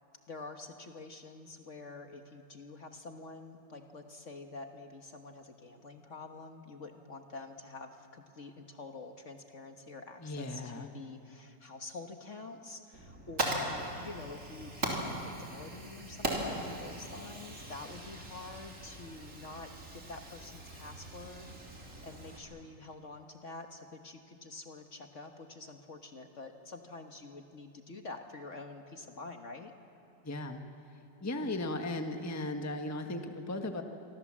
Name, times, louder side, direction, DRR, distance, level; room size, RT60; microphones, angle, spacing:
voice 1, 0.3-29.7 31.4-31.7, left 3 dB, 45° left, 5 dB, 1.5 m, -47 dB
voice 2, 10.2-10.9 30.2-30.6 31.2-33.8, left 2 dB, 10° left, 5 dB, 1.1 m, -36 dB
Fire, 12.9-22.4, right 1 dB, 45° right, 3.6 m, -39 dB
27.5 x 24.0 x 7.4 m, 2.7 s
omnidirectional pair, 2.0 m